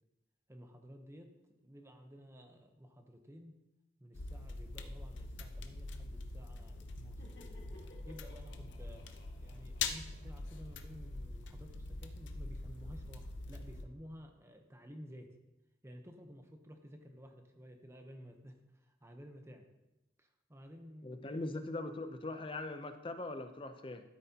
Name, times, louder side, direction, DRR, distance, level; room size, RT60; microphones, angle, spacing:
voice 1, 0.5-1.4 1.6-3.6 4.0-7.2 8.1-9.0 9.4-15.4 15.8-19.7 20.2-21.6, equal, 15° right, 5 dB, 0.8 m, -53 dB
sound 1, 4.1-13.8, left 3 dB, 90° left, 0.7 m, -44 dB
Laughter, 6.9-11.6, left 1 dB, 60° left, 1.5 m, -60 dB
voice 2, 21.0-24.0, left 2 dB, 30° left, 8 dB, 0.6 m, -41 dB
13.0 x 8.0 x 2.9 m, 0.97 s
head